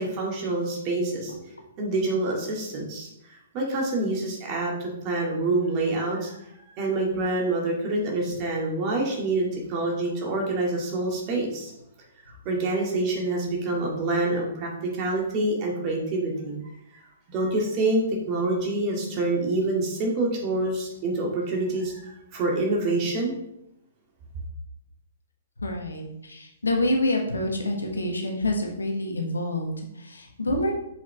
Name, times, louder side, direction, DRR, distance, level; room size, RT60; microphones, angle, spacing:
voice 1, 0.0-1.3 1.8-6.3 6.8-11.7 12.5-16.6 17.3-23.3, right 2 dB, 35° right, -1 dB, 2.1 m, -26 dB
voice 2, 25.6-30.7, left 1 dB, 80° left, 2 dB, 1.4 m, -27 dB
7.2 x 5.6 x 3.4 m, 0.81 s
figure-of-eight pair, 115°, 0 cm